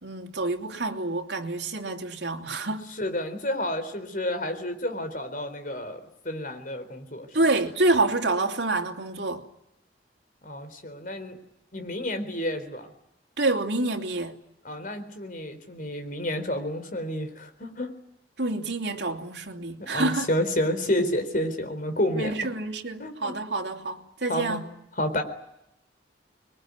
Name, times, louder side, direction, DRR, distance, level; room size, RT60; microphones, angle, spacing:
voice 1, 0.0-2.9 7.3-9.5 13.4-14.4 18.4-20.3 22.2-24.6, right 2 dB, 70° right, 3.0 m, -27 dB
voice 2, 2.9-7.3 10.4-11.4 11.7-12.9 14.6-17.9 19.8-22.5 23.0-23.3 24.3-24.6 25.0-25.2, left 1 dB, 50° left, 4.1 m, -30 dB
26.0 x 22.0 x 9.7 m
head